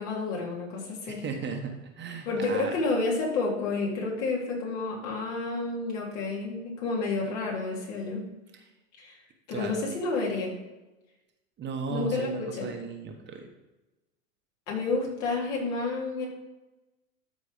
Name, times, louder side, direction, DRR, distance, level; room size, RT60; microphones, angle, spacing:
voice 1, 0.0-1.2 2.3-8.2 9.0-9.2 9.5-10.5 11.9-12.7 14.7-16.3, left 3 dB, 60° left, -2 dB, 3.7 m, -30 dB
voice 2, 1.1-2.7 9.5-9.8 11.6-13.5, right 5 dB, 25° right, 3 dB, 1.3 m, -36 dB
13.0 x 4.5 x 5.1 m, 1.1 s
hypercardioid pair, 110°, 40 cm